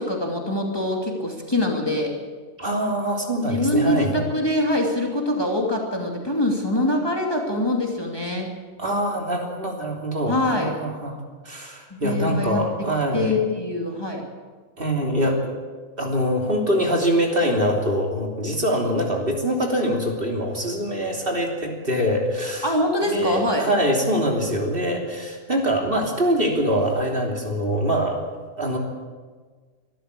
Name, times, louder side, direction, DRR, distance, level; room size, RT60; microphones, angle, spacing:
voice 1, 0.0-2.1 3.5-8.5 10.3-10.7 11.9-12.6 13.1-14.2 22.6-23.7, left 1 dB, 15° left, 0 dB, 2.8 m, -24 dB
voice 2, 2.6-4.2 8.8-11.2 11.4-13.4 14.8-15.5 16.0-22.7 23.0-28.2 28.6-28.8, equal, 40° right, 1 dB, 3.4 m, -24 dB
24.0 x 13.0 x 8.4 m, 1.5 s
omnidirectional pair, 1.4 m